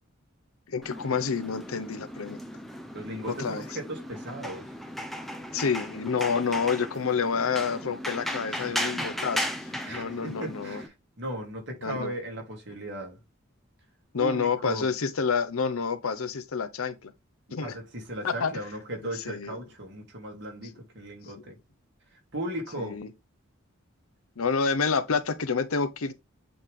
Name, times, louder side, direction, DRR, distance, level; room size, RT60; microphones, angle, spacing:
voice 1, 0.7-2.4 3.3-3.6 5.5-10.8 11.8-12.1 14.1-17.1 17.5-17.8 18.2-18.5 19.1-19.6 22.8-23.1 24.4-26.1, left 5 dB, 80° left, 0.7 m, -28 dB
sound 1, 0.8-10.9, equal, ahead, 0.7 m, -36 dB
voice 2, 2.9-4.7 8.5-9.0 9.9-13.2 14.2-14.9 17.6-21.6 22.1-23.0, right 1 dB, 55° right, 2.6 m, -37 dB
7.9 x 3.3 x 3.6 m
head